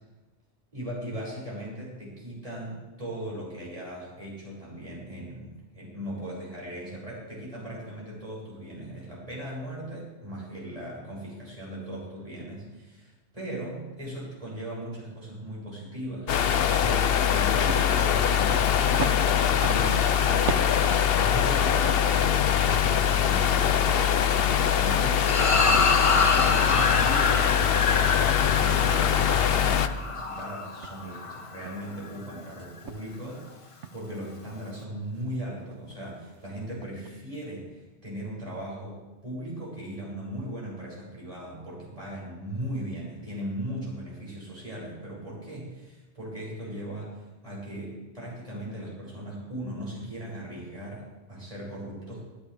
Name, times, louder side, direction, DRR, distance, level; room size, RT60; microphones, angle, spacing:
voice 1, 0.7-20.8 21.2-24.2 24.5-52.3, right 1 dB, 30° right, -6 dB, 7.3 m, -38 dB
sound 1, 16.3-29.9, left 9 dB, 60° left, 0.9 m, -23 dB
sound 2, 17.7-22.2 22.6-27.2 27.4-29.8 30.3-30.5 30.8-32.2 32.6-33.4 33.8-34.1 35.1-35.3 35.7-36.1 36.4-36.5 36.8-37.2, right 6 dB, 85° right, 1.2 m, -40 dB
sound 3, 25.2-31.8, left 4 dB, 30° left, 0.8 m, -26 dB
24.5 x 13.0 x 3.5 m, 1.1 s
omnidirectional pair, 1.2 m